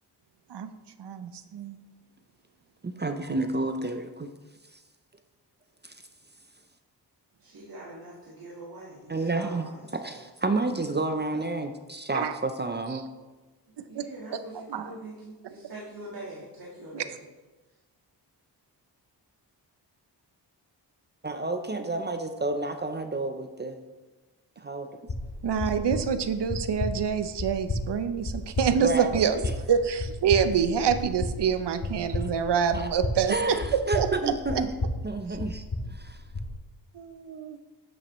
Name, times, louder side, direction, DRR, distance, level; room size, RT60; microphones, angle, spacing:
voice 1, 1.0-1.8 12.1-12.4 13.8-14.1 14.5-14.8 16.9-17.0 25.4-29.4 29.7-34.6 36.9-37.6, right 7 dB, 70° right, 10 dB, 0.7 m, -26 dB
voice 2, 2.8-4.3 5.8-6.0 9.1-13.0 21.2-23.8 24.6-24.9 28.8-29.5 32.1-32.3 32.7-32.9 33.3-34.7 35.0-36.2, right 2 dB, 25° right, 7 dB, 0.6 m, -30 dB
voice 3, 7.4-10.2 13.9-17.2, right 2 dB, 55° right, -7 dB, 1.8 m, -43 dB
sound 1, 25.1-36.5, left 2 dB, 40° left, 1.3 m, -34 dB
8.6 x 7.6 x 3.1 m, 1.2 s
cardioid pair, 65°, 43 cm